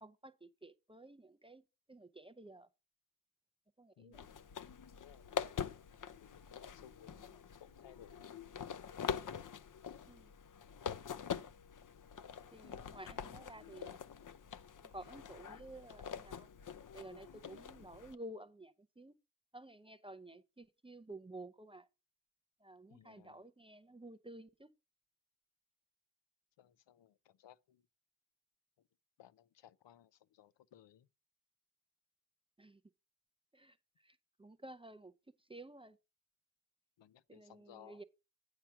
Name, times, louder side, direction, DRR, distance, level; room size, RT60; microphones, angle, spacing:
voice 1, 0.0-2.7 3.8-4.3 10.1-10.3 12.5-14.0 14.9-16.5 16.9-19.2 19.5-21.9 22.6-24.7 32.6-32.8 33.5-33.8 34.0-35.1 35.5-36.0 37.3-38.0, right 1 dB, 15° right, 0.4 m, -53 dB
sound 1, 4.1-18.2, left 8 dB, 50° left, 0.6 m, -45 dB
voice 2, 6.2-8.4 22.9-23.5 26.6-27.8 29.2-31.1 37.0-38.0, left 11 dB, 90° left, 0.6 m, -61 dB
8.9 x 4.7 x 5.7 m
wide cardioid pair, 145°, 42 cm